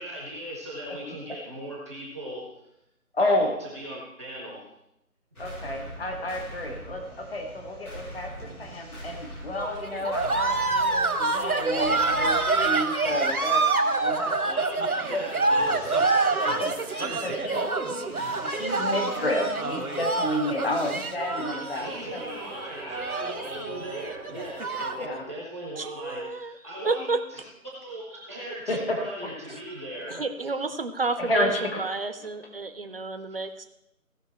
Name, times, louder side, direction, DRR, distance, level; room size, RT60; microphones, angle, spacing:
voice 1, 0.0-2.4 3.2-4.7 14.4-17.7 21.7-27.4 27.8-30.2, right 1 dB, 10° right, -4 dB, 0.9 m, -38 dB
voice 2, 3.1-3.5 5.4-14.6 15.1-15.2 16.6-16.7 17.2-17.6 17.9-18.1 18.5-22.2 24.3-24.5 24.9-25.2 28.7-29.1 31.2-31.8, left 1 dB, 40° left, 2 dB, 1.9 m, -30 dB
sound 1, 5.4-25.3, equal, 80° left, 4.9 m, -45 dB
sound 2, 9.6-25.1, right 3 dB, 85° right, 1.5 m, -27 dB
voice 3, 25.8-26.6 26.8-27.2 29.5-29.6 30.1-33.6, right 3 dB, 40° right, 9 dB, 0.9 m, -30 dB
16.5 x 5.6 x 4.3 m, 0.84 s
figure-of-eight pair, 160°, 43 cm